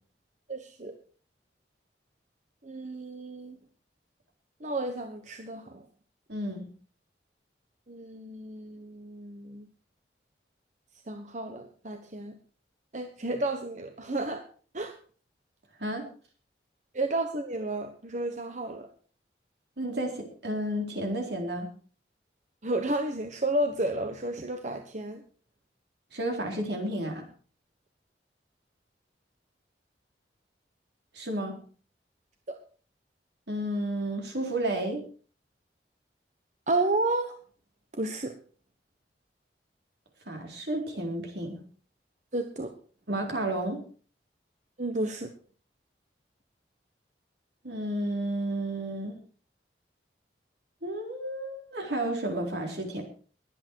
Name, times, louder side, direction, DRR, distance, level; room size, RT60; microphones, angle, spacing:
voice 1, 0.5-1.0 2.6-3.6 4.6-5.8 7.9-9.7 11.1-12.3 12.9-14.5 14.7-14.9 16.9-18.9 22.6-25.2 32.5-32.6 36.7-37.3 37.9-38.3 42.3-42.7 44.8-45.3, right 2 dB, 45° right, 6 dB, 1.2 m, -32 dB
voice 2, 6.3-6.7 15.8-16.1 19.8-21.7 26.1-27.3 31.1-31.6 33.5-35.0 40.3-41.6 43.1-43.8 47.6-49.2 50.8-53.0, right 1 dB, 70° right, 2 dB, 4.0 m, -32 dB
21.0 x 8.6 x 4.7 m, 0.41 s
head